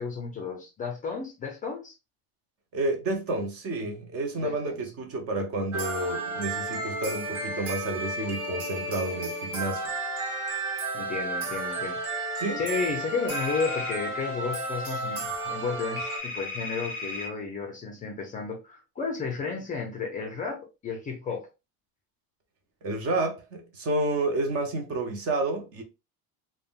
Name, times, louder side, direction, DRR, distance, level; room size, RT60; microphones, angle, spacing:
voice 1, 0.0-1.9 4.4-4.8 10.9-21.5, left 5 dB, 20° left, 0.4 m, -33 dB
voice 2, 2.7-9.9 12.4-12.6 22.8-25.8, right 2 dB, 35° right, 0.5 m, -30 dB
sound 1, 5.7-16.2, right 2 dB, 65° right, 1.0 m, -32 dB
sound 2, 13.3-13.9 16.0-17.3, left 3 dB, 5° right, 1.1 m, -35 dB
3.5 x 2.1 x 2.3 m
cardioid pair, 155°, 42 cm